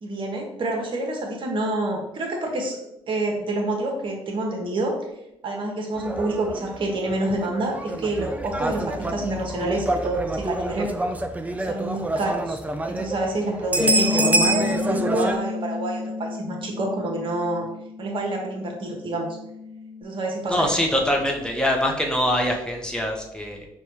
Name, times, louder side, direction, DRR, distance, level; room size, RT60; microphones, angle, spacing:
voice 1, 0.0-2.8 3.1-5.0 5.4-10.9 11.6-12.6 12.9-17.7 18.0-19.4 20.0-20.8, right 2 dB, 40° right, 1 dB, 0.9 m, -28 dB
sound 1, 6.0-15.4, right 1 dB, 10° right, 0.4 m, -26 dB
Bass guitar, 13.8-20.0, left 4 dB, 55° left, 0.5 m, -31 dB
voice 2, 20.5-23.7, equal, 5° left, 0 dB, 0.8 m, -23 dB
5.3 x 2.3 x 3.0 m, 0.84 s
figure-of-eight pair, 45°, 13 cm